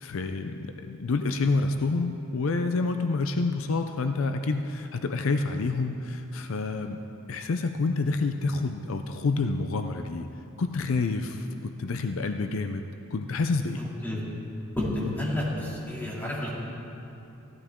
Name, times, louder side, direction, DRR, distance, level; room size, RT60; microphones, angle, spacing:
voice 1, 0.0-7.0 7.3-10.3 10.6-12.9 13.1-13.8, left 3 dB, 70° left, 7 dB, 0.5 m, -28 dB
voice 2, 13.8-14.2 14.8-16.6, left 1 dB, 10° left, -6 dB, 2.6 m, -30 dB
16.0 x 12.0 x 3.7 m, 2.8 s
head